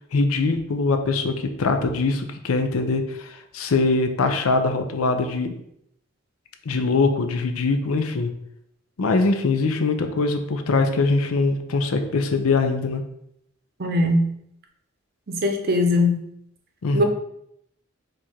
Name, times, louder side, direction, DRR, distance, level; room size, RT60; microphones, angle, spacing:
voice 1, 0.1-5.5 6.7-8.3 9.0-13.0 16.8-17.0, left 3 dB, 90° left, 7 dB, 0.6 m, -22 dB
voice 2, 13.8-14.3 15.3-16.2 16.9-17.0, left 1 dB, 45° right, 4 dB, 0.6 m, -20 dB
4.6 x 2.5 x 4.2 m, 0.76 s
head